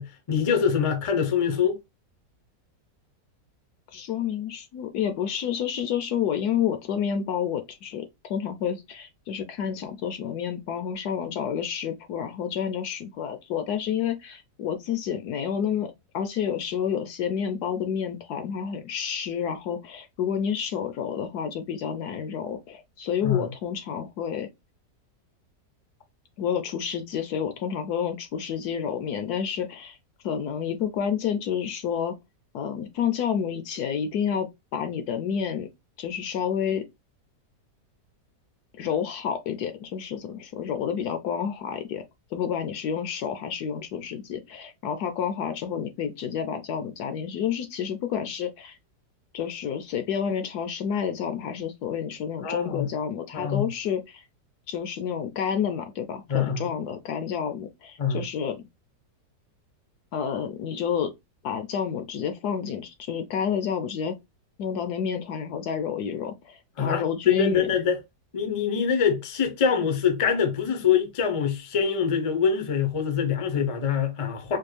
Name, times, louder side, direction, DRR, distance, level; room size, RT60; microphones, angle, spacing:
voice 1, 0.0-1.8 23.2-23.4 52.4-52.9 53.3-53.6 56.3-56.7 58.0-58.2 66.8-68.0 68.3-74.6, left 7 dB, 55° left, 0.3 m, -24 dB
voice 2, 3.9-24.5 26.4-30.0 30.2-32.1 32.5-35.7 36.0-36.8 38.8-42.0 42.3-48.8 49.3-54.2 54.7-58.6 60.1-61.1 61.4-64.1 64.6-67.7, left 8 dB, 70° left, 1.0 m, -29 dB
4.4 x 2.3 x 3.2 m
omnidirectional pair, 1.9 m